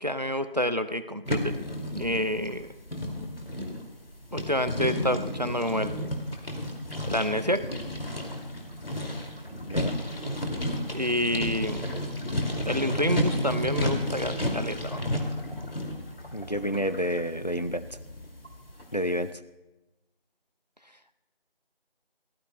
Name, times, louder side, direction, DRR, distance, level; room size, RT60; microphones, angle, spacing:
voice 1, 0.0-1.5 1.9-2.7 4.3-6.1 7.1-7.6 10.9-11.9 12.6-15.1, equal, 45° right, 12 dB, 0.5 m, -28 dB
sound 1, 1.3-18.9, left 1 dB, 70° left, 2.4 m, -32 dB
voice 2, 16.3-17.9 18.9-19.3, equal, 45° left, 11 dB, 0.4 m, -29 dB
26.5 x 14.5 x 2.2 m, 1.0 s
figure-of-eight pair, 175°, 30 cm